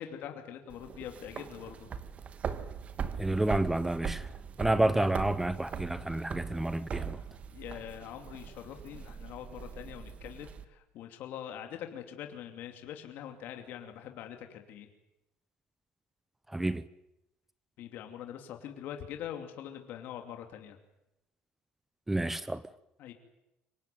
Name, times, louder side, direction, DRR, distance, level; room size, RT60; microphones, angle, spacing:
voice 1, 0.0-1.9 4.8-5.2 7.1-7.3 7.5-14.9 17.8-20.8 23.0-23.1, left 10 dB, 65° left, 2.8 m, -43 dB
sound 1, 0.7-10.6, right 7 dB, 40° right, 1.5 m, -40 dB
voice 2, 3.2-4.3 4.6-7.2 16.5-16.9 22.1-22.6, right 1 dB, 10° right, 0.8 m, -29 dB
25.0 x 19.0 x 9.2 m
cardioid pair, 115°, 4 cm